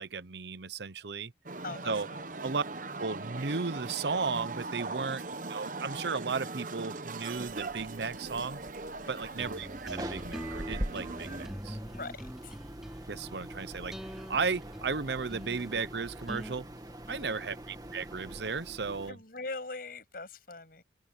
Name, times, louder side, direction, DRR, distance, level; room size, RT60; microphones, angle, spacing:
voice 1, 0.0-1.3 1.8-2.1 2.4-2.6 3.0-5.2 5.5-8.6 9.1-11.8 13.1-16.7 17.1-19.2, right 4 dB, 70° right, 0.9 m, -35 dB
sound 1, 1.5-11.5, right 3 dB, 45° right, 1.0 m, -40 dB
voice 2, 1.6-2.3 4.9-5.3 9.0-9.4 11.7-12.6 17.1-17.5 19.1-20.8, left 3 dB, 55° left, 7.4 m, -43 dB
sound 2, 7.3-19.1, right 1 dB, 20° right, 1.8 m, -44 dB
sound 3, 9.4-16.6, equal, ahead, 3.6 m, -44 dB
open air
head